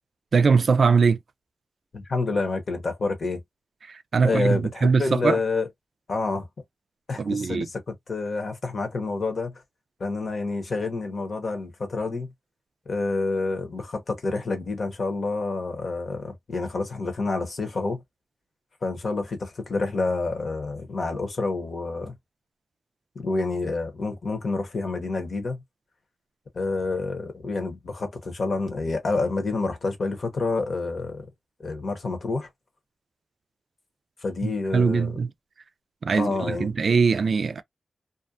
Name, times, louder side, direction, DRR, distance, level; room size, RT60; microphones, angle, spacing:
voice 1, 0.3-1.2 3.9-5.4 7.2-7.7 34.4-35.3 36.0-37.6, right 5 dB, 65° right, 0.3 m, -21 dB
voice 2, 1.9-3.4 4.2-5.7 6.1-6.5 7.1-9.6 10.0-12.3 12.9-18.0 18.8-22.1 23.1-25.6 26.5-31.3 31.6-32.5 34.2-35.2 36.1-36.7, left 3 dB, 60° left, 0.9 m, -28 dB
2.5 x 2.1 x 2.5 m
cardioid pair, 70°, 0 cm